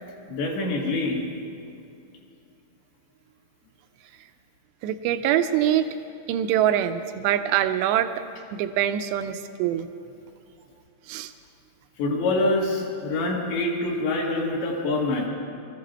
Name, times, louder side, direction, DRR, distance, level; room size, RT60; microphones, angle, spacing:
voice 1, 0.2-1.2 12.0-15.3, left 2 dB, 70° left, -2 dB, 4.1 m, -25 dB
voice 2, 4.8-5.9 6.3-8.2 8.5-9.9 11.1-11.3, right 11 dB, 85° right, 9 dB, 2.5 m, -24 dB
21.0 x 14.0 x 4.5 m, 2.6 s
omnidirectional pair, 5.4 m